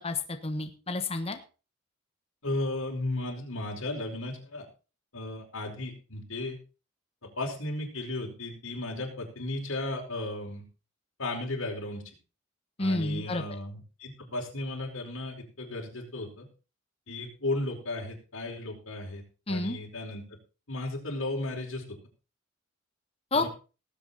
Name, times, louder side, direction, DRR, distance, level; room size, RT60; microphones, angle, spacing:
voice 1, 0.0-1.4 12.8-13.4 19.5-19.8 23.3-23.5, left 2 dB, 30° left, 6 dB, 1.3 m, -30 dB
voice 2, 2.4-4.6 5.1-6.6 7.2-10.6 11.2-12.0 12.8-16.5 17.1-20.2 20.7-22.0 23.3-23.5, left 2 dB, 85° left, 0 dB, 5.0 m, -35 dB
19.0 x 8.1 x 4.2 m, 0.34 s
head